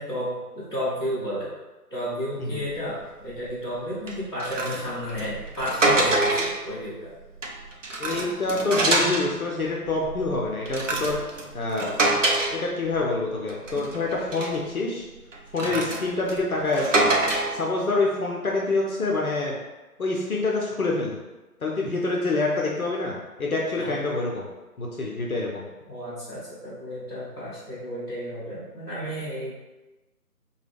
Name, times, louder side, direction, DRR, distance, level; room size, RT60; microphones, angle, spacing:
voice 1, 0.0-1.5 1.9-7.1 15.6-15.8 23.8-23.9 25.9-29.5, equal, 15° left, -15 dB, 1.2 m, -32 dB
sound 1, 2.7-2.9 3.3-3.5 4.1-6.7 7.2-9.4 9.8-13.2 13.5-14.7 15.3-17.6, right 2 dB, 55° right, 0.6 m, -26 dB
voice 2, 8.0-11.2 11.5-11.9 12.5-15.1 15.5-17.2 17.5-19.6 20.0-21.2 21.6-24.4 24.8-25.7, left 3 dB, 65° left, -2 dB, 0.7 m, -26 dB
4.5 x 2.3 x 3.4 m, 1.1 s
figure-of-eight pair, 170°, 47 cm